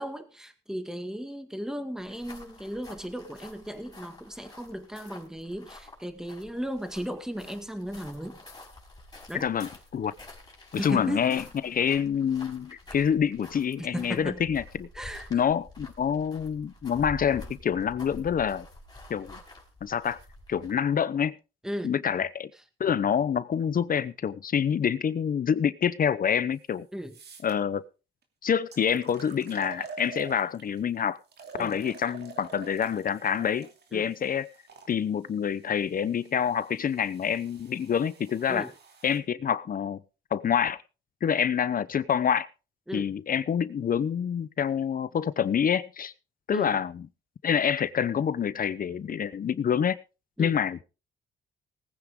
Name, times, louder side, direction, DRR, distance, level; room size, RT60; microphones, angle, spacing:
voice 1, 0.0-8.4 9.3-9.5 10.8-11.4 13.8-14.4 14.9-15.4 21.6-22.0 26.9-27.1 31.6-31.8 33.9-34.1 38.5-38.7 42.9-43.1 46.5-46.8 50.4-50.6, equal, 5° right, 2.0 m, -36 dB
sound 1, 2.0-20.9, left 2 dB, 20° left, 5.4 m, -48 dB
voice 2, 9.4-10.1 10.8-14.9 15.3-18.7 19.1-19.4 19.8-20.2 20.5-21.4 21.8-22.5 22.8-26.9 27.4-27.8 28.4-31.2 31.6-34.5 34.9-38.7 39.0-40.0 40.3-40.8 41.2-42.5 42.9-46.1 46.5-46.9 47.4-50.0 50.4-50.8, left 8 dB, 45° left, 0.8 m, -27 dB
sound 2, 26.5-26.6 27.0-27.5 28.2-28.3 28.7-30.8 31.3-34.9 35.8-39.2, right 5 dB, 55° right, 2.8 m, -47 dB
19.0 x 9.4 x 3.7 m
cardioid pair, 90°, 20 cm